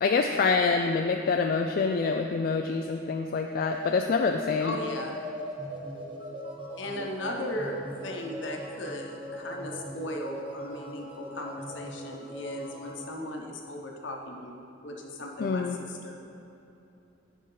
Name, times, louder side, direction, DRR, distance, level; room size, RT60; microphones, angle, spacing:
voice 1, 0.0-4.7 15.4-15.8, left 4 dB, 50° left, 3 dB, 0.3 m, -26 dB
sound 1, 3.4-13.2, equal, 25° right, 1.1 m, -40 dB
voice 2, 4.6-5.2 6.8-16.2, left 1 dB, 70° left, 1 dB, 1.0 m, -37 dB
10.5 x 5.1 x 3.9 m, 2.8 s
head